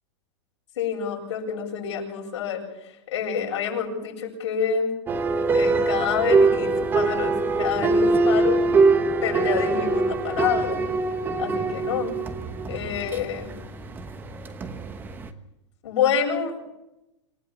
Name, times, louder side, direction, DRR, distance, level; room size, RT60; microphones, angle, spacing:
voice 1, 0.8-2.6 3.1-4.9 5.5-8.6 9.2-10.8 11.4-12.2 12.7-13.5 15.8-16.5, left 7 dB, 85° left, 0 dB, 8.0 m, -27 dB
sound 1, 5.1-15.3, right 3 dB, 15° right, 1.1 m, -23 dB
27.0 x 15.0 x 7.2 m, 0.89 s
supercardioid pair, 160°, 15 cm